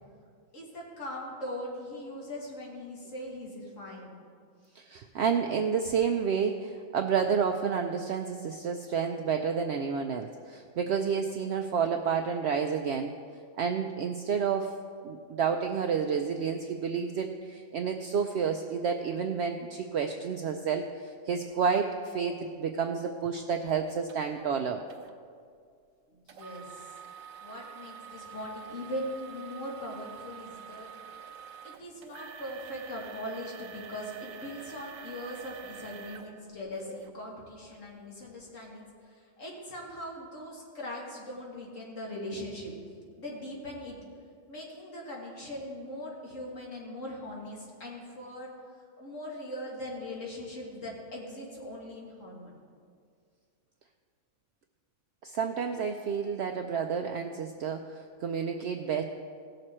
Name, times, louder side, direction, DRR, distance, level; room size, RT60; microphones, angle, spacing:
voice 1, 0.5-4.2 26.1-26.9 27.4-30.9 31.6-42.7 43.2-43.9 44.5-48.5 49.0-52.6, left 1 dB, 70° left, -3 dB, 2.2 m, -40 dB
voice 2, 4.7-13.1 13.6-24.8 55.2-59.0, right 6 dB, 65° right, 5 dB, 0.7 m, -30 dB
sound 1, 24.1-24.2 24.9-25.1 26.3-37.1 37.7-37.8 38.4-38.5, right 8 dB, 85° right, 1.1 m, -47 dB
16.5 x 6.6 x 4.3 m, 2.2 s
omnidirectional pair, 1.4 m